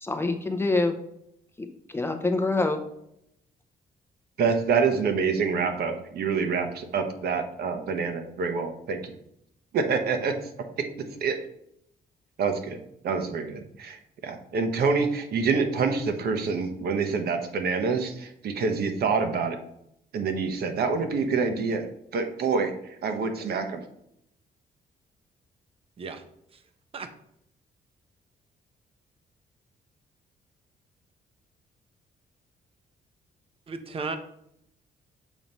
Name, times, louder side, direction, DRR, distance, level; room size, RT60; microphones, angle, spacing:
voice 1, 0.0-1.0 1.6-2.8, left 2 dB, 15° left, 6 dB, 0.5 m, -26 dB
voice 2, 4.4-9.1 9.7-10.3 11.2-11.4 12.4-12.8 13.0-19.6 20.1-21.9 22.1-23.8, right 5 dB, 70° right, 6 dB, 0.9 m, -26 dB
voice 3, 33.7-34.2, right 4 dB, 35° right, 9 dB, 0.6 m, -34 dB
7.1 x 3.0 x 5.3 m, 0.75 s
cardioid pair, 160°, 17 cm